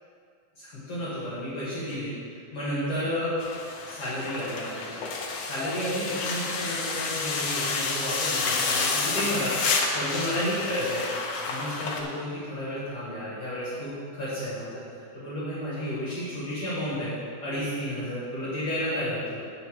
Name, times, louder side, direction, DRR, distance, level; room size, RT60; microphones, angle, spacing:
voice 1, 0.6-2.1 2.5-3.3 3.8-5.0 5.4-14.8 15.1-17.1 17.4-19.4, equal, 45° left, -10 dB, 3.1 m, -32 dB
sound 1, 3.4-12.0, left 4 dB, 85° left, 1.4 m, -30 dB
9.0 x 7.2 x 4.9 m, 2.3 s
omnidirectional pair, 4.3 m